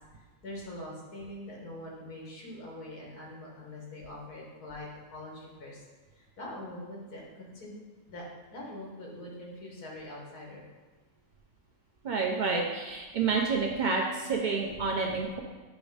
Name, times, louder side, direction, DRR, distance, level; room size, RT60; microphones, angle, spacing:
voice 1, 0.1-5.8 6.1-7.8 8.1-10.6, left 1 dB, 75° left, -2 dB, 1.9 m, -43 dB
voice 2, 12.0-15.4, right 4 dB, 80° right, 0 dB, 0.4 m, -29 dB
9.0 x 3.1 x 5.0 m, 1.3 s
omnidirectional pair, 1.7 m